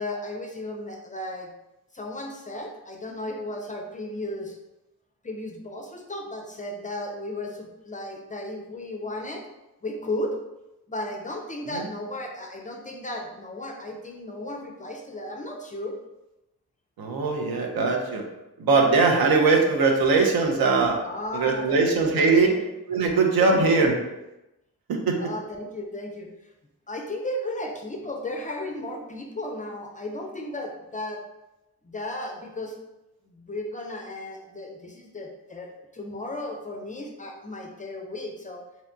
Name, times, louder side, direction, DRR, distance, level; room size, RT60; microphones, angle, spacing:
voice 1, 0.0-1.5 1.9-4.6 5.2-9.4 9.8-10.4 10.9-16.0 21.0-22.6 23.4-23.7 25.2-26.3 26.9-31.2 31.8-32.7 33.3-38.6, left 1 dB, 20° left, 1 dB, 0.4 m, -34 dB
voice 2, 17.0-18.2 18.6-21.0 21.3-22.5 22.9-23.9 24.9-25.2, right 4 dB, 75° right, 1 dB, 0.6 m, -21 dB
2.7 x 2.1 x 2.5 m, 0.95 s
cardioid pair, 55°, 37 cm